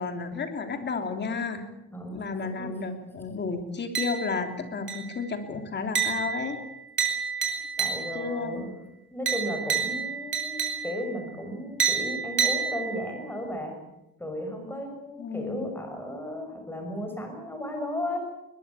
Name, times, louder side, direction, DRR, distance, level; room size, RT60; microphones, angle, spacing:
voice 1, 0.0-1.7 2.1-6.6 8.1-8.7 15.2-15.7, left 4 dB, 35° left, 7 dB, 3.2 m, -32 dB
voice 2, 1.9-2.9 7.8-8.7 9.1-13.7 14.2-18.2, left 1 dB, 5° left, 3 dB, 6.3 m, -35 dB
sound 1, 3.9-4.5 4.9-5.3 5.9-8.4 9.3-11.2 11.8-13.2, right 7 dB, 35° right, 5.1 m, -29 dB
21.5 x 21.5 x 8.5 m, 0.92 s
cardioid pair, 150°, 32 cm